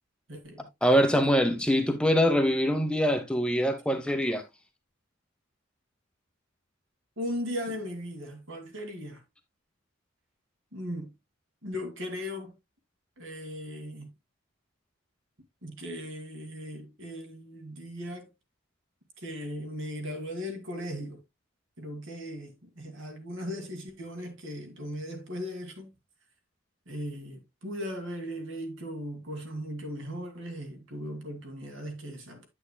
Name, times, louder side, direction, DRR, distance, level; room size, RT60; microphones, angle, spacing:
voice 1, 0.3-0.7 7.2-9.2 10.7-11.2 11.6-12.5 13.2-14.1 15.6-18.3 19.2-21.2 21.8-25.9 26.9-32.5, equal, 65° right, 2.5 m, -38 dB
voice 2, 0.8-4.4, equal, 5° left, 0.8 m, -24 dB
8.8 x 8.6 x 2.2 m
head